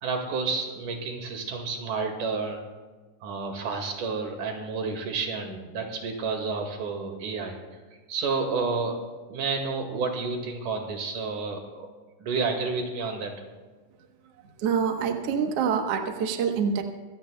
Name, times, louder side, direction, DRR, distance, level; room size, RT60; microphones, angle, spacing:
voice 1, 0.0-2.6 3.2-7.6 8.1-9.0 9.3-11.9 12.2-13.3, right 4 dB, 75° right, 3 dB, 3.4 m, -30 dB
voice 2, 14.6-16.8, right 6 dB, 60° right, 4 dB, 1.9 m, -26 dB
25.0 x 16.5 x 2.3 m, 1.3 s
omnidirectional pair, 3.6 m